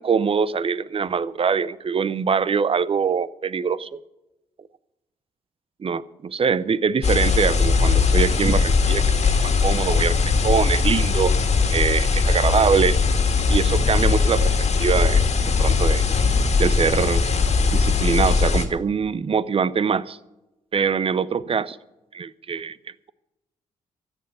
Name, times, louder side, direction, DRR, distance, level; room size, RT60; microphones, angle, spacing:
voice 1, 0.0-4.0 5.8-9.3 9.6-11.3 11.7-13.0 13.5-14.5 14.8-15.2 15.6-16.0 16.6-17.2 17.7-20.2 20.7-21.8 22.1-22.8, right 6 dB, 40° right, 18 dB, 0.6 m, -23 dB
sound 1, 7.0-18.7, left 4 dB, 50° left, 1.9 m, -20 dB
13.5 x 8.1 x 8.2 m, 0.98 s
supercardioid pair, 50°, 14 cm